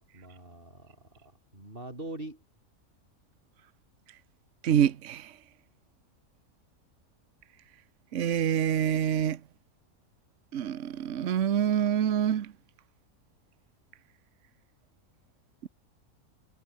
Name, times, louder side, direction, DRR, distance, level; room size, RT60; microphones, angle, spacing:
voice 1, 0.0-2.4, right 1 dB, 35° right, 6.0 m, -43 dB
voice 2, 4.6-5.3 8.1-9.4 10.5-12.5, right 9 dB, 60° right, 1.2 m, -26 dB
omnidirectional pair, 1.6 m